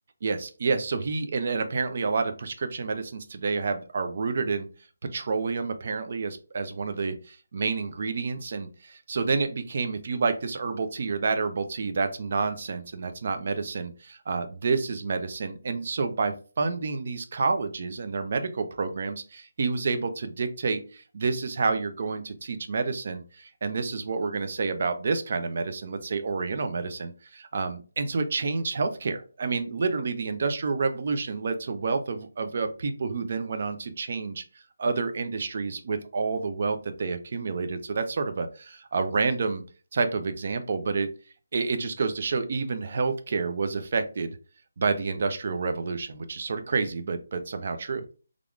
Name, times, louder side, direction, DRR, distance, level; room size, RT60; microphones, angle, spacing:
voice 1, 0.2-4.7 5.0-34.4 34.8-39.6 39.9-41.1 41.5-44.4 44.8-48.0, right 4 dB, 45° right, 8 dB, 0.4 m, -29 dB
3.3 x 2.4 x 2.3 m, 0.37 s
figure-of-eight pair, 170°, 0 cm